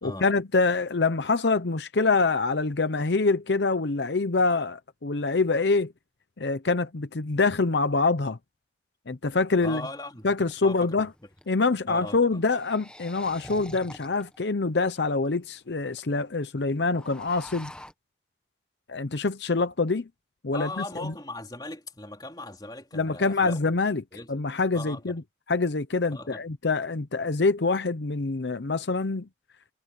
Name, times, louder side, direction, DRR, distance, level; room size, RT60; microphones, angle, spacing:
voice 1, 0.0-5.9 6.4-8.4 9.1-9.8 10.2-11.1 11.5-17.7 18.9-20.1 20.4-21.1 22.9-24.0 24.3-25.2 25.5-29.3, left 3 dB, 75° left, 0.8 m, -25 dB
voice 2, 9.6-11.1 11.9-12.4 20.5-23.6 24.1-24.3 24.7-25.2 26.1-26.4, left 2 dB, 20° left, 3.5 m, -39 dB
sound 1, 9.7-9.8 10.3-11.5 12.3-14.4 15.0-15.1 15.3-15.4 15.5-16.0 16.3-16.5 16.8-17.9, left 1 dB, 5° left, 1.3 m, -46 dB
head